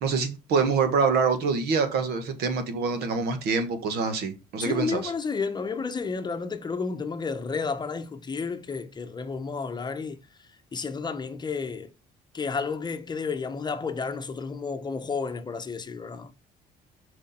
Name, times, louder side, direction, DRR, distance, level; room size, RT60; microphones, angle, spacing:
voice 1, 0.0-5.0, right 5 dB, 75° right, 1.5 m, -25 dB
voice 2, 4.6-11.9 12.3-16.3, left 5 dB, 25° left, 0.8 m, -31 dB
6.3 x 5.0 x 4.3 m
cardioid pair, 110°, 17 cm